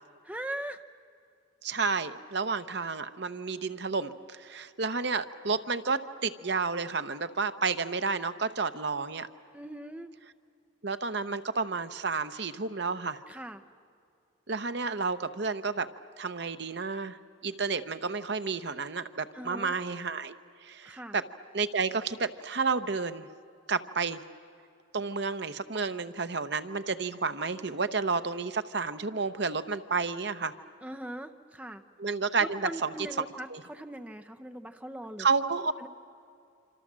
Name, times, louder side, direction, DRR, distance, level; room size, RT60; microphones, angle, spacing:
voice 1, 0.2-0.8 9.5-10.1 13.3-13.6 19.3-19.7 20.8-21.2 30.8-31.8 32.4-35.3 35.8-35.9, right 1 dB, 5° right, 6 dB, 0.7 m, -40 dB
voice 2, 1.6-9.3 10.8-13.2 14.5-15.9 16.2-17.2 17.4-20.4 20.6-21.2 21.5-23.3 23.7-24.2 24.9-30.5 32.0-32.9 33.5-33.6 35.2-35.7, right 4 dB, 60° right, 10 dB, 0.9 m, -31 dB
26.5 x 26.5 x 7.5 m, 2.4 s
head